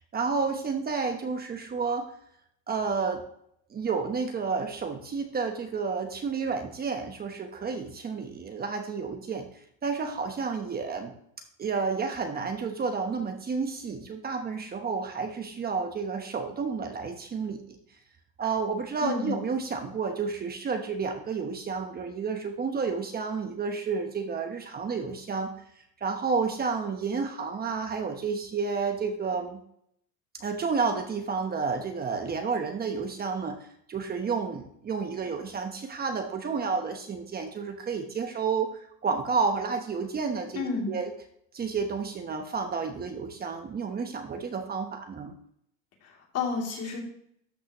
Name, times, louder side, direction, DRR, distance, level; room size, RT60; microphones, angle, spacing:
voice 1, 0.1-2.1 2.7-3.2 3.7-9.5 9.8-11.1 11.6-17.8 18.4-25.5 26.0-29.6 30.4-41.1 41.5-45.3, right 5 dB, 25° right, 5 dB, 1.0 m, -31 dB
voice 2, 19.0-19.4 40.5-40.9 46.0-47.0, left 4 dB, 45° left, -1 dB, 2.9 m, -31 dB
12.5 x 6.0 x 3.0 m, 0.70 s
cardioid pair, 130°, 35 cm